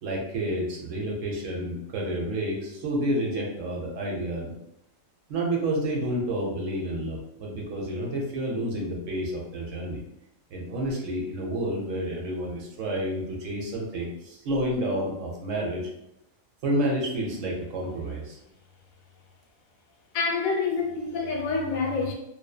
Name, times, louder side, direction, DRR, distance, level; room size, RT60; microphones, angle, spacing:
voice 1, 0.0-4.5 5.3-10.0 10.5-15.8 16.6-18.4, right 1 dB, 70° right, 1.0 m, -29 dB
voice 2, 20.1-22.1, left 4 dB, 80° left, 1.0 m, -27 dB
2.7 x 2.3 x 2.3 m
omnidirectional pair, 1.4 m